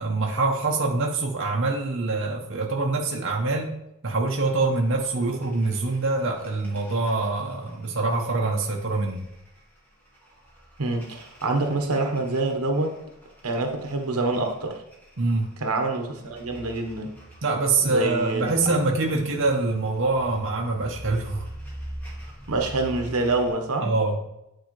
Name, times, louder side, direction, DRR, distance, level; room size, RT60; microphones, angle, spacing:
voice 1, 0.0-3.7 4.0-9.2 15.2-15.5 17.4-21.5 23.8-24.2, right 3 dB, 55° right, 0 dB, 0.8 m, -25 dB
sound 1, 4.3-23.5, equal, 10° left, 1.5 m, -44 dB
voice 2, 10.8-12.9 13.4-14.8 15.6-17.1 17.8-18.5 22.5-23.9, right 2 dB, 90° right, 4 dB, 1.1 m, -26 dB
8.9 x 4.6 x 3.1 m, 0.84 s
head